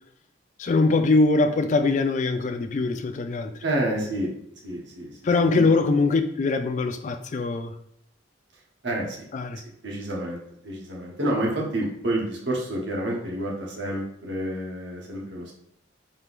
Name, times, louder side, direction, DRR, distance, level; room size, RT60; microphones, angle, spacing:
voice 1, 0.6-3.5 5.2-7.7 9.3-9.6, left 3 dB, 40° left, 7 dB, 0.3 m, -22 dB
voice 2, 3.6-4.3 4.6-5.7 8.8-9.2 9.6-10.4 10.6-15.5, right 1 dB, 65° right, -2 dB, 1.0 m, -29 dB
4.4 x 3.6 x 2.5 m, 0.71 s
head